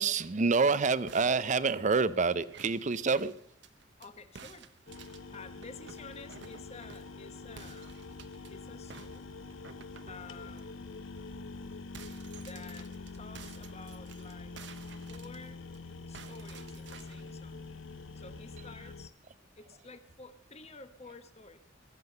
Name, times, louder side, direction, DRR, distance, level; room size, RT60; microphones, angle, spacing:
voice 1, 0.0-3.3, right 4 dB, 40° right, 16 dB, 0.6 m, -27 dB
sound 1, 1.1-4.1 4.4-7.2 7.6-8.5 8.9-10.7 11.1-11.2 11.5-15.8 16.1-17.3, right 5 dB, 65° right, 1.0 m, -53 dB
voice 2, 4.0-4.7 5.3-8.0 8.5-9.2 10.1-10.9 12.3-14.6 15.1-15.6 16.1-17.7 18.1-19.1 19.6-21.6, left 4 dB, 35° left, 10 dB, 1.1 m, -51 dB
sound 2, 4.9-19.1, left 3 dB, 90° left, 0.7 m, -45 dB
22.0 x 7.6 x 6.7 m, 0.66 s
head